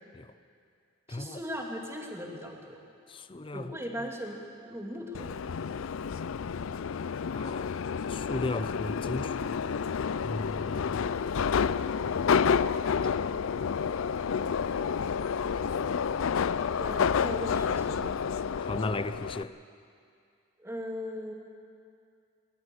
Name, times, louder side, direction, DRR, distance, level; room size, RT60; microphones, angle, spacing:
voice 1, 1.1-2.8 3.5-4.4 4.7-5.5 16.8-18.1 20.6-21.3, equal, 15° right, 2.3 m, -38 dB
voice 2, 3.1-3.7 7.3-7.7 8.1-10.0 10.2-11.0 18.6-19.6, left 2 dB, 25° left, 0.5 m, -36 dB
Subway metro underground, 5.1-19.4, left 6 dB, 75° left, 0.4 m, -29 dB
21.0 x 14.0 x 9.7 m
head